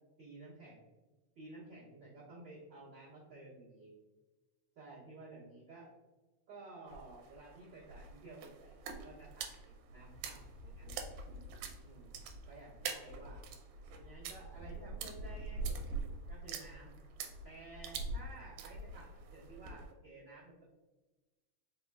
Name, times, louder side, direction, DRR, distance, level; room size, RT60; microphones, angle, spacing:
voice 1, 0.2-0.8 1.3-3.9 4.7-5.9 6.5-9.5 9.9-11.0 11.8-12.2 12.4-13.4 14.0-15.8 16.3-16.9 17.4-20.6, right 2 dB, 55° right, -8 dB, 1.3 m, -53 dB
sound 1, 6.9-19.9, right 4 dB, 85° right, 2.3 m, -44 dB
5.2 x 3.6 x 2.3 m, 1.2 s
omnidirectional pair, 4.1 m